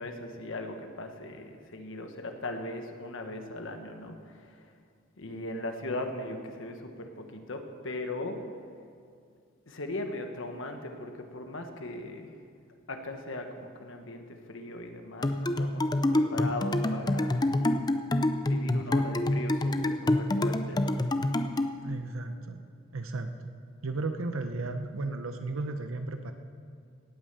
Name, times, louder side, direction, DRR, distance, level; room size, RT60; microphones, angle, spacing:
voice 1, 0.0-4.7 5.2-8.4 9.7-12.3 12.9-15.8 16.1-17.6 18.5-21.0, left 2 dB, 65° left, 5 dB, 1.3 m, -38 dB
sound 1, 15.2-21.8, left 1 dB, 20° left, 0.5 m, -27 dB
voice 2, 21.8-22.6 22.9-23.6 23.8-26.3, right 2 dB, 75° right, 7 dB, 0.9 m, -34 dB
17.5 x 9.0 x 6.8 m, 2.2 s
head